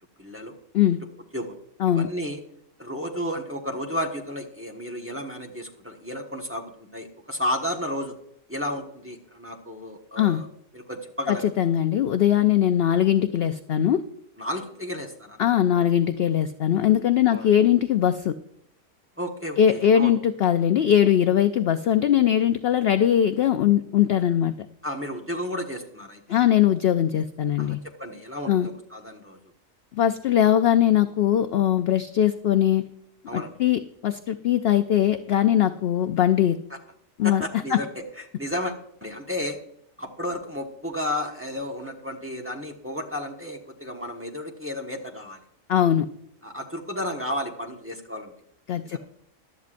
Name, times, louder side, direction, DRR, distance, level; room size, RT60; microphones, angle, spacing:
voice 1, 0.2-0.6 1.3-1.5 1.8-2.4 2.8-8.1 8.5-10.5 10.7-11.5 14.4-15.4 15.8-15.9 17.3-17.5 19.2-20.1 24.8-26.2 27.6-29.4 33.3-33.5 37.2-39.6 40.0-45.4 46.4-48.3 48.8-49.0, left 1 dB, 10° right, 1 dB, 1.3 m, -32 dB
voice 2, 11.3-14.0 15.4-18.3 19.6-24.5 26.3-27.8 28.5-28.7 30.0-32.8 33.3-36.6 37.2-37.8 45.7-46.1 48.7-49.0, left 10 dB, 65° left, 10 dB, 0.6 m, -21 dB
15.5 x 12.0 x 2.5 m, 0.72 s
omnidirectional pair, 1.4 m